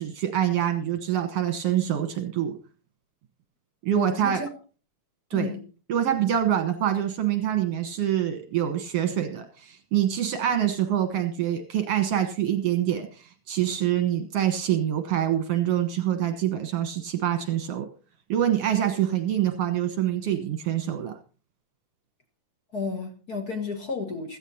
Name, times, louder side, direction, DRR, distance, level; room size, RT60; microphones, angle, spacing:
voice 1, 0.0-2.6 3.8-4.4 5.3-5.5 5.9-17.9 18.3-21.2, right 10 dB, 60° right, 1.8 m, -25 dB
voice 2, 3.9-4.5 5.3-5.6 22.7-24.4, left 4 dB, 40° left, 1.4 m, -32 dB
16.0 x 14.0 x 2.8 m
omnidirectional pair, 3.7 m